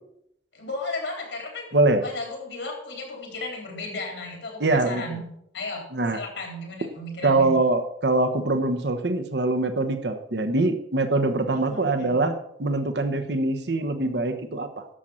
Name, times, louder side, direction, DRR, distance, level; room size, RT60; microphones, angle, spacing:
voice 1, 0.5-5.3 5.5-5.8 6.1-7.5 11.5-12.2 13.1-13.4, left 2 dB, 75° left, 1 dB, 3.8 m, -35 dB
voice 2, 1.7-2.0 4.6-5.2 5.9-6.2 7.2-14.9, right 2 dB, 65° right, 8 dB, 1.1 m, -23 dB
11.5 x 7.5 x 5.7 m, 0.75 s
head